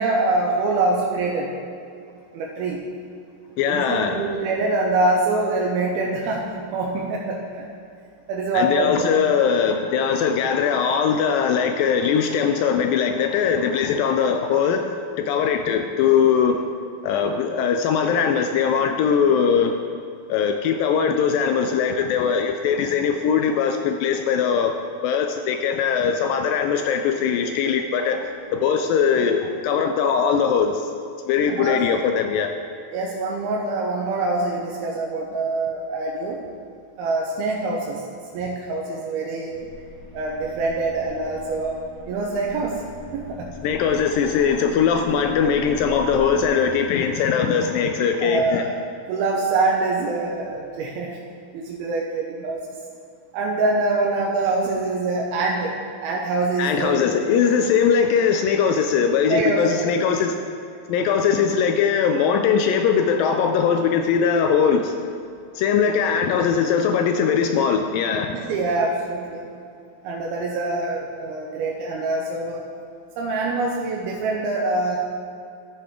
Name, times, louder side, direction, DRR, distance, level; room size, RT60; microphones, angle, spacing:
voice 1, 0.0-1.5 2.3-2.9 3.7-6.5 6.7-7.7 8.3-9.1 31.5-31.9 32.9-36.4 37.0-38.1 38.3-39.7 40.1-41.8 42.1-42.9 43.1-43.5 48.2-48.7 49.1-51.2 51.5-52.6 53.3-57.2 59.3-59.9 68.3-69.5 70.0-72.6 73.2-75.0, right 3 dB, 90° right, -2 dB, 2.6 m, -24 dB
voice 2, 3.6-4.1 8.5-16.6 17.0-19.8 20.3-24.7 25.0-30.9 31.3-32.5 43.6-48.6 56.6-60.5 60.9-65.0 65.6-68.4, left 7 dB, 85° left, 5 dB, 2.0 m, -21 dB
sound 1, 39.5-46.5, left 1 dB, 65° left, 2.9 m, -40 dB
13.0 x 6.7 x 3.7 m, 2.4 s
omnidirectional pair, 4.4 m